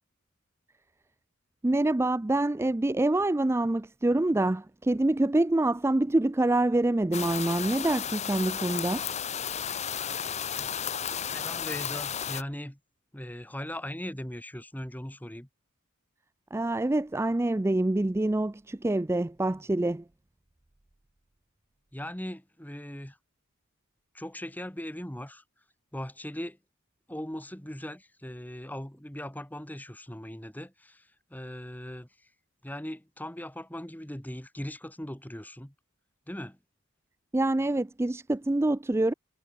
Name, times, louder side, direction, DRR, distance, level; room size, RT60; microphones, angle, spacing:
voice 1, 1.6-9.0 16.5-20.0 37.3-39.1, right 2 dB, 15° right, 0.4 m, -26 dB
sound 1, 7.1-12.4, left 8 dB, 35° left, 0.8 m, -33 dB
voice 2, 11.2-12.8 13.1-15.5 21.9-23.2 24.1-25.4 25.9-26.6 27.1-31.0 31.3-32.1 32.6-35.7 36.3-36.6, left 1 dB, 10° left, 2.0 m, -39 dB
head